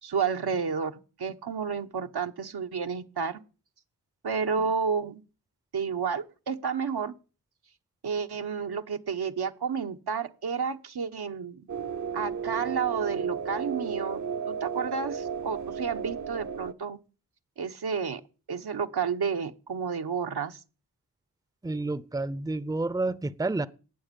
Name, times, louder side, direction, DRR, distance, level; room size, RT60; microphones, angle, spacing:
voice 1, 0.0-3.4 4.2-5.2 5.7-7.1 8.0-11.6 12.1-14.2 14.5-17.0 17.6-18.2 18.5-20.6, right 6 dB, 75° right, 1.0 m, -31 dB
sound 1, 11.7-16.7, right 6 dB, 50° right, 0.7 m, -34 dB
voice 2, 21.6-23.7, right 2 dB, 10° right, 0.6 m, -29 dB
18.5 x 7.3 x 5.2 m
cardioid pair, 55°, 39 cm